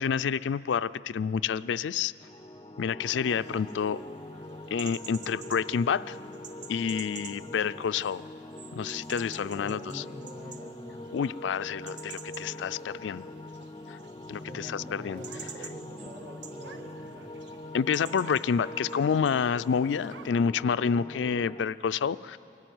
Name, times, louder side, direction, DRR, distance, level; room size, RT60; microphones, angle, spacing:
voice 1, 0.0-2.1 2.8-4.0 4.7-6.2 6.7-8.2 8.8-10.0 11.1-13.2 14.3-15.2 17.7-22.4, left 6 dB, 85° left, 15 dB, 0.4 m, -28 dB
sound 1, 2.2-21.6, left 1 dB, 25° left, 0.4 m, -43 dB
sound 2, 3.2-20.5, right 6 dB, 80° right, 1.4 m, -49 dB
voice 2, 9.4-11.6 13.4-13.6 14.4-17.3, equal, 50° right, 1 dB, 3.0 m, -47 dB
23.5 x 14.5 x 9.4 m, 2.9 s
head